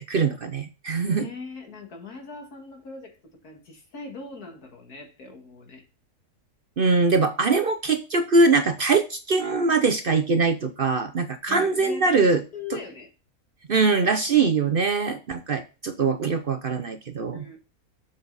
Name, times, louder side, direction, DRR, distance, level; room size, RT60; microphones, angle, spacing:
voice 1, 0.0-1.3 6.8-12.4 12.7-12.8 13.7-17.4, right 4 dB, 50° right, 0.7 m, -22 dB
voice 2, 1.0-3.2 3.4-5.8 11.5-13.1 17.3-17.6, left 4 dB, 85° left, 2.4 m, -40 dB
7.4 x 6.0 x 4.0 m
omnidirectional pair, 1.6 m